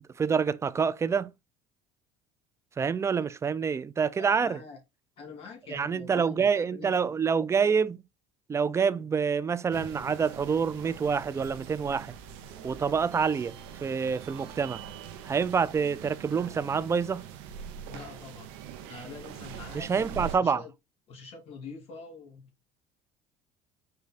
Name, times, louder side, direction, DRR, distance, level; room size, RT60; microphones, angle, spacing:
voice 1, 0.2-1.3 2.8-4.6 5.7-8.0 8.5-12.1 12.6-14.8 15.2-17.2 19.7-20.6, right 6 dB, 25° right, 0.4 m, -27 dB
voice 2, 4.2-4.8 5.2-6.9 17.9-18.6 18.9-20.7 21.1-22.5, left 4 dB, 55° left, 2.0 m, -45 dB
sound 1, 9.7-20.4, right 8 dB, 80° right, 0.8 m, -43 dB
5.1 x 2.3 x 4.1 m
supercardioid pair, 80°, 12 cm